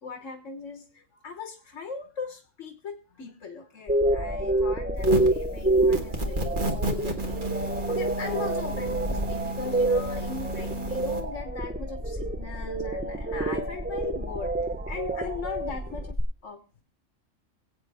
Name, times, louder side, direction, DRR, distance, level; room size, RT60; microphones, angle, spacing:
voice 1, 0.0-16.2 16.4-16.8, left 5 dB, 75° left, 6 dB, 1.5 m, -39 dB
sound 1, 3.9-16.2, right 1 dB, 10° right, 0.5 m, -28 dB
sound 2, 5.0-5.4 5.9-11.2, right 1 dB, 40° right, 1.6 m, -32 dB
22.5 x 8.4 x 3.4 m, 0.37 s
omnidirectional pair, 1.3 m